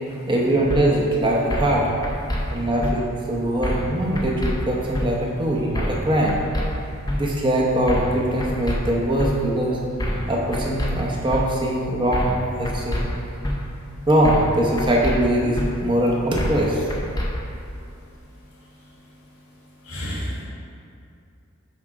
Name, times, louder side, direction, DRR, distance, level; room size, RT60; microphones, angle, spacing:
voice 1, 0.3-1.9 2.5-6.4 7.1-9.8 10.3-12.3 12.6-13.1 14.1-16.9, right 1 dB, 20° right, -3 dB, 0.7 m, -22 dB
sound 1, 0.7-0.8 1.5-1.8 2.0-2.4 2.8-2.9 3.6-3.9 4.2-4.5 4.9-5.1 5.7-6.0 6.3-6.7 7.1-7.2 7.9-8.1 8.4-8.8 9.2-9.3 10.0-10.3 10.5-10.9 11.3-11.4 12.1-12.4 12.7-13.0 13.4-13.6 14.2-14.5 14.8-15.2 15.6-15.7 16.4-16.6 16.9-17.3, left 1 dB, 15° left, 0.5 m, -25 dB
voice 2, 2.3-2.7 19.8-20.4, equal, 85° left, -7 dB, 1.5 m, -32 dB
7.0 x 3.5 x 5.0 m, 2.5 s
head